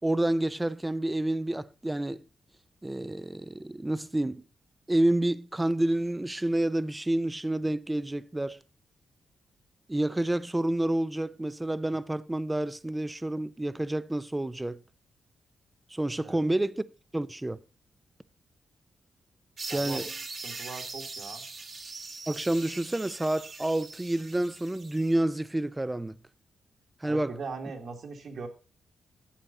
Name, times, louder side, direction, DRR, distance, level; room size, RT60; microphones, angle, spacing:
voice 1, 0.0-2.2 2.8-4.5 4.9-8.6 9.9-14.8 15.9-16.8 17.1-17.6 19.7-20.1 22.3-26.2 27.0-27.4, right 1 dB, 10° right, 0.5 m, -29 dB
sound 1, 19.6-25.2, right 3 dB, 40° right, 1.3 m, -41 dB
voice 2, 19.7-20.0 20.4-21.4 27.1-28.5, right 4 dB, 60° right, 2.0 m, -40 dB
11.5 x 8.4 x 4.1 m
wide cardioid pair, 145°, 0 cm